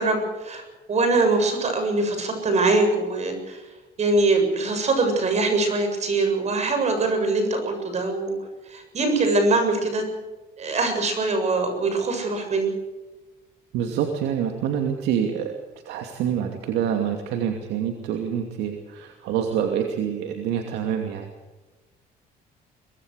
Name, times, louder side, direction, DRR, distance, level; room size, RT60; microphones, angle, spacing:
voice 1, 0.0-3.7 4.0-8.3 8.7-10.1 10.6-12.7, right 3 dB, 40° right, 6 dB, 7.3 m, -23 dB
voice 2, 13.7-15.5 15.8-21.3, right 8 dB, 90° right, 4 dB, 2.7 m, -26 dB
24.0 x 20.0 x 6.6 m, 1.2 s
cardioid pair, 110°, 17 cm